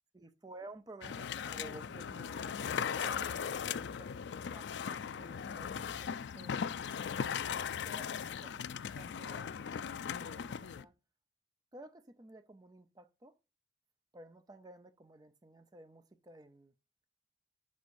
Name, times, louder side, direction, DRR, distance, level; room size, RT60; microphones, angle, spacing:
voice 1, 0.1-4.7 5.2-6.7 7.5-9.7 10.1-10.9 11.7-13.3 14.1-16.7, right 2 dB, 20° right, 0.5 m, -54 dB
sound 1, 1.0-10.8, left 7 dB, 80° left, 0.4 m, -38 dB
8.2 x 6.4 x 2.5 m
head